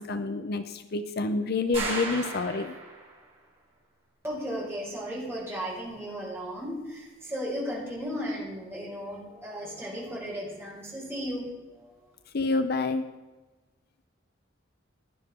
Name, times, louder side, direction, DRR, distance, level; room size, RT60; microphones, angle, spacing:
voice 1, 0.0-2.7 12.3-13.1, left 3 dB, 55° left, 9 dB, 0.6 m, -28 dB
sound 1, 1.7-3.2, right 3 dB, 30° right, 4.9 m, -35 dB
voice 2, 4.2-11.8, equal, 15° right, -5 dB, 4.9 m, -35 dB
17.0 x 10.5 x 3.7 m, 1.2 s
head